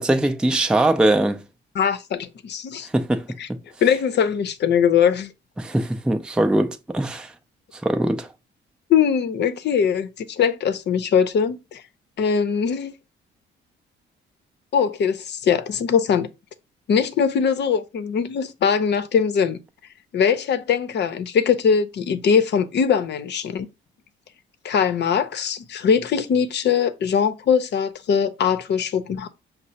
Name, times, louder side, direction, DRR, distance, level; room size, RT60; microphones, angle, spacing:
voice 1, 0.0-1.4 2.8-3.6 5.6-7.3 7.7-8.3, right 1 dB, 5° right, 0.4 m, -21 dB
voice 2, 1.7-2.9 3.4-3.5 3.8-5.3 8.9-11.8 12.2-12.9 14.7-16.3 16.9-19.6 20.1-23.7 24.6-29.3, left 7 dB, 60° left, 0.7 m, -21 dB
5.6 x 2.0 x 4.0 m
cardioid pair, 90°, 20 cm